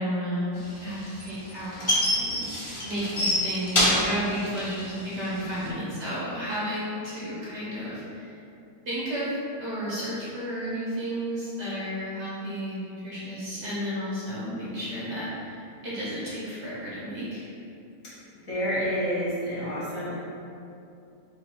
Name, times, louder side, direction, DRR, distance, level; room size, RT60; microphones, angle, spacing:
voice 1, 0.0-8.3 8.9-9.3 9.6-17.5, equal, 50° right, -8 dB, 1.0 m, -32 dB
sound 1, 0.6-5.7, left 1 dB, 35° left, 0.4 m, -26 dB
voice 2, 5.3-5.7 18.5-20.2, equal, 55° left, -10 dB, 1.7 m, -29 dB
4.7 x 2.4 x 4.4 m, 2.7 s
omnidirectional pair, 1.7 m